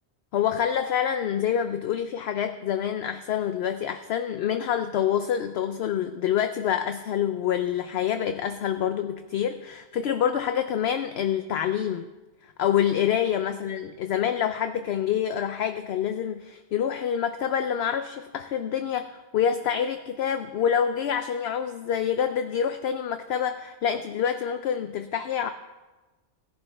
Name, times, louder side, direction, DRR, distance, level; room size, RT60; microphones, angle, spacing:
voice 1, 0.3-12.1 12.6-25.5, left 9 dB, 65° left, 9 dB, 0.8 m, -27 dB
17.0 x 11.0 x 3.4 m, 1.2 s
omnidirectional pair, 1.2 m